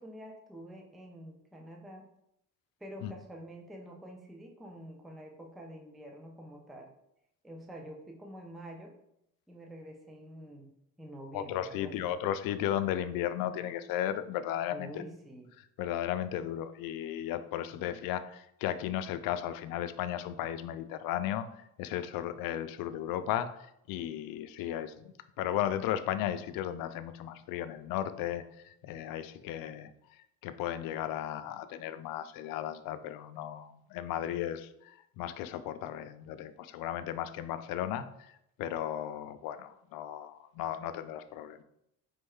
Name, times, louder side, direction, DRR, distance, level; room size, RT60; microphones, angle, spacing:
voice 1, 0.0-2.1 2.8-6.9 7.4-8.9 9.5-10.7 11.0-12.1 14.7-15.5 17.7-18.0, right 1 dB, ahead, 1 dB, 0.3 m, -47 dB
voice 2, 11.3-15.0 15.8-21.5 21.8-23.5 23.9-25.0 25.4-29.9 30.4-41.6, left 11 dB, 80° left, 11 dB, 0.5 m, -35 dB
4.4 x 3.1 x 3.6 m, 0.77 s
cardioid pair, 150°, 34 cm